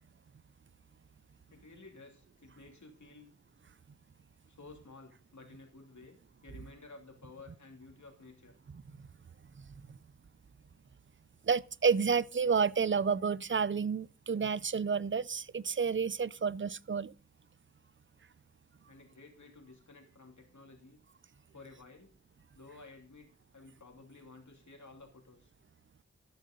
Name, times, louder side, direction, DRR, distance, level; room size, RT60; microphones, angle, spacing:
voice 1, 1.5-3.3 4.5-6.2 6.4-8.5 18.9-21.0 21.5-22.1 22.5-25.5, left 3 dB, 75° left, 3.0 m, -54 dB
voice 2, 11.4-17.1, right 6 dB, 40° right, 0.5 m, -30 dB
13.5 x 6.6 x 5.2 m
wide cardioid pair, 40°, 29 cm